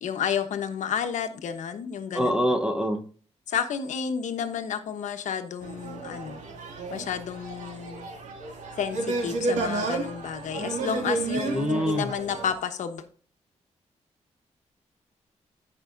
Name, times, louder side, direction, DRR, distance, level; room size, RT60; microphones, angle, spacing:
voice 1, 0.0-2.4 3.5-6.4 6.9-8.1 8.8-13.0, left 7 dB, 90° left, 1.1 m, -31 dB
voice 2, 2.2-3.1 11.5-12.1, equal, 5° right, 0.9 m, -25 dB
sound 1, 5.6-12.5, right 3 dB, 80° right, 2.2 m, -32 dB
15.0 x 5.5 x 2.6 m
wide cardioid pair, 140°, 12 cm